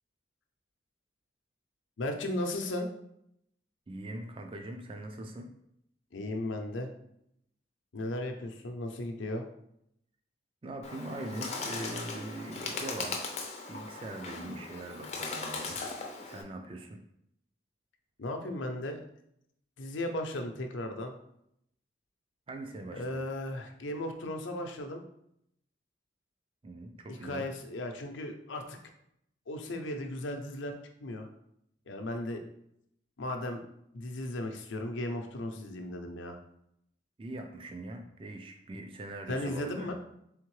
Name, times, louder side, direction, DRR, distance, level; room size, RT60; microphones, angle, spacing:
voice 1, 2.0-2.9 6.1-6.9 7.9-9.4 18.2-19.0 19.8-21.1 22.9-25.0 27.1-28.8 29.5-30.7 31.0-31.3 31.9-32.4 33.2-33.6 33.9-36.4 39.3-39.9, left 1 dB, 85° left, 4 dB, 0.6 m, -36 dB
voice 2, 3.9-5.5 10.6-13.2 13.7-15.8 16.2-17.0 22.5-23.2 26.6-27.5 37.2-39.9, right 1 dB, 30° right, 4 dB, 0.4 m, -41 dB
Bird, 10.8-16.4, left 4 dB, 35° left, 0.4 m, -38 dB
3.6 x 3.5 x 3.1 m, 0.75 s
head